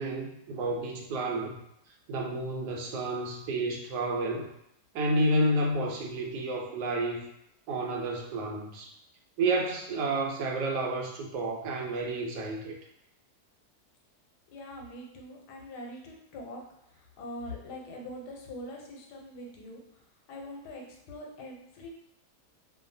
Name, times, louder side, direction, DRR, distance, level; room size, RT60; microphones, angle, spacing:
voice 1, 0.0-1.6 2.1-4.5 4.9-7.2 7.7-8.9 9.4-12.7, right 2 dB, 90° right, 0 dB, 1.2 m, -30 dB
voice 2, 14.5-16.6 16.9-20.0 20.3-21.9, left 1 dB, 85° left, 0 dB, 1.2 m, -43 dB
2.6 x 2.2 x 2.6 m, 0.78 s
omnidirectional pair, 1.7 m